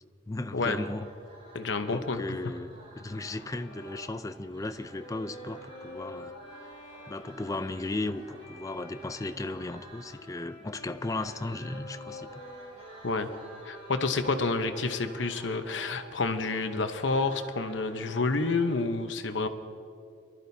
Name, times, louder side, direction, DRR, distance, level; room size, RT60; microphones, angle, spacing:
voice 1, 0.3-1.1 1.9-2.7 3.0-6.3 7.1-12.4, left 2 dB, 20° left, 10 dB, 0.4 m, -35 dB
sound 1, 0.7-18.9, right 1 dB, 30° right, 3.7 m, -52 dB
voice 2, 1.5-2.2 13.0-13.3 13.6-19.5, left 3 dB, 80° left, 7 dB, 0.9 m, -29 dB
Bowed string instrument, 3.5-15.3, left 1 dB, 35° left, 3.3 m, -49 dB
24.0 x 12.5 x 2.8 m, 2.6 s
head